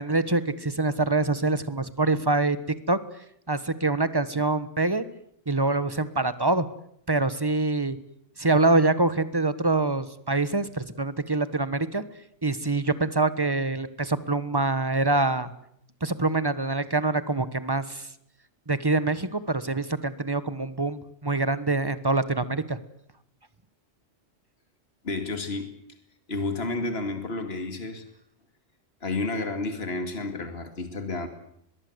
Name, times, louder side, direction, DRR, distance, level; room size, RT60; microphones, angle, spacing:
voice 1, 0.0-2.6 2.9-3.0 3.5-5.0 5.5-6.7 7.1-8.0 8.4-12.0 12.4-15.5 16.0-18.1 18.7-22.8, right 2 dB, 20° right, 14 dB, 1.3 m, -25 dB
voice 2, 25.0-25.8 26.3-28.0 29.0-31.3, left 3 dB, 55° left, 8 dB, 2.7 m, -31 dB
23.5 x 21.5 x 8.1 m, 0.69 s
omnidirectional pair, 1.3 m